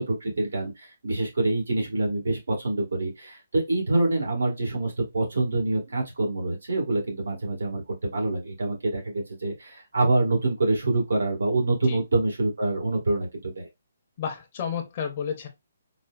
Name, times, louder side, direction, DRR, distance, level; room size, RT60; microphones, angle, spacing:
voice 1, 0.0-13.7, right 2 dB, 85° right, 1.5 m, -26 dB
voice 2, 14.2-15.5, left 7 dB, 35° left, 0.5 m, -31 dB
4.1 x 2.0 x 2.3 m
hypercardioid pair, 160°, 0 cm